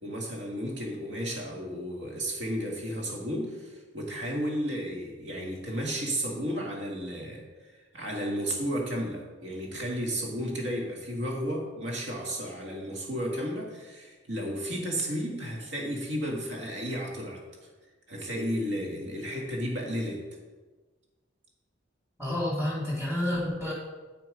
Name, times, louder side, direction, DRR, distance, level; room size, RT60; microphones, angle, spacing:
voice 1, 0.0-17.4 18.1-20.2, equal, 60° right, -1 dB, 1.9 m, -33 dB
voice 2, 22.2-23.7, left 1 dB, 15° right, -6 dB, 2.3 m, -29 dB
9.2 x 6.0 x 4.9 m, 1.3 s
head